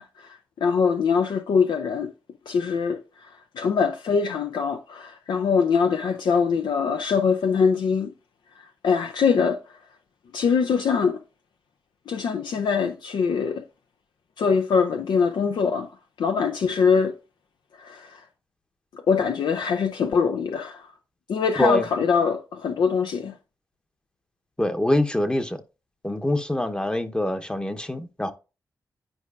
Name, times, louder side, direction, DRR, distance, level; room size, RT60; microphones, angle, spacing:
voice 1, 0.0-2.1 2.5-8.1 8.6-9.8 10.3-11.2 12.1-13.6 14.4-15.9 16.2-17.2 17.7-18.2 18.9-20.9 21.3-23.3, left 6 dB, 70° left, 0.5 m, -23 dB
voice 2, 24.6-25.6 26.0-28.3, left 1 dB, 10° left, 0.9 m, -24 dB
10.5 x 4.6 x 2.4 m
supercardioid pair, 45°, 8 cm